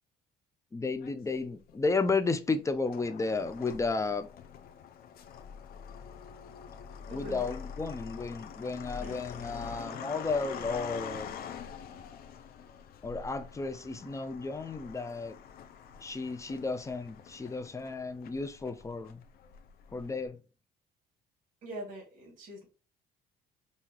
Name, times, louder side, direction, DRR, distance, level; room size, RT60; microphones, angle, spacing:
voice 1, 0.7-4.3 7.1-11.4 13.0-15.4 16.0-19.2 19.9-20.4, left 3 dB, 20° left, 0.6 m, -33 dB
sound 1, 1.0-1.8 2.5-20.3, left 7 dB, 65° left, 0.7 m, -45 dB
voice 2, 7.1-7.5 9.0-9.2 11.8-12.0 13.9-14.0 21.6-22.6, right 1 dB, 55° right, 2.5 m, -44 dB
5.7 x 2.7 x 3.1 m
cardioid pair, 110°, 17 cm